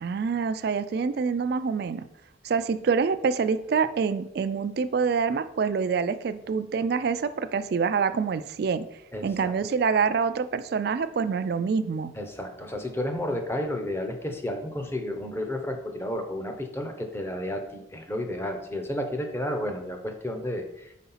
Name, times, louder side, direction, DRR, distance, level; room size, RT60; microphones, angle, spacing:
voice 1, 0.0-2.1 2.4-8.9 9.2-12.1, right 5 dB, 55° right, 12 dB, 0.3 m, -26 dB
voice 2, 9.1-9.5 12.1-20.9, left 1 dB, 15° left, 4 dB, 0.7 m, -32 dB
4.7 x 4.1 x 5.5 m, 0.82 s
head